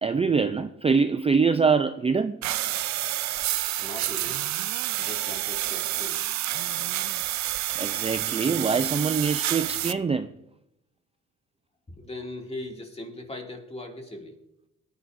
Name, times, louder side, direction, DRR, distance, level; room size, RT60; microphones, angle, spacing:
voice 1, 0.0-2.4 7.7-10.3, right 5 dB, 20° right, 0.5 m, -24 dB
sound 1, 2.4-9.9, right 14 dB, 65° right, 0.6 m, -29 dB
voice 2, 3.8-4.4 4.9-6.2 11.9-14.4, left 1 dB, 20° left, 2.6 m, -39 dB
20.0 x 11.0 x 2.7 m
cardioid pair, 90°, 30 cm